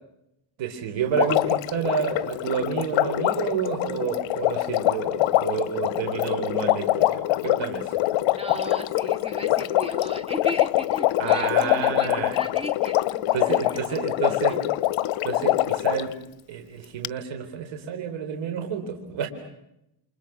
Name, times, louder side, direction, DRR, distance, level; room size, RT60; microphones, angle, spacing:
voice 1, 0.6-7.9 11.2-12.4 13.3-14.6 15.2-16.1 16.5-19.3, right 7 dB, 60° right, 5 dB, 4.4 m, -29 dB
Water, 1.1-16.1 17.0-17.1, left 17 dB, 65° left, 1.1 m, -24 dB
voice 2, 8.3-14.6, equal, 10° right, 7 dB, 2.6 m, -36 dB
29.5 x 28.5 x 6.1 m, 0.84 s
cardioid pair, 135°, 50 cm